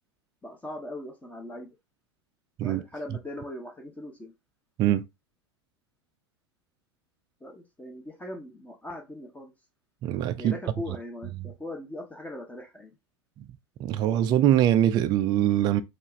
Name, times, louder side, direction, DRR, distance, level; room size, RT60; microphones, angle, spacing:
voice 1, 0.4-1.7 2.6-4.3 7.4-9.5 10.4-12.9, left 1 dB, 10° left, 0.9 m, -40 dB
voice 2, 10.0-10.6 13.8-15.8, right 11 dB, 30° right, 0.3 m, -23 dB
4.4 x 2.5 x 3.2 m
figure-of-eight pair, 85°, 14 cm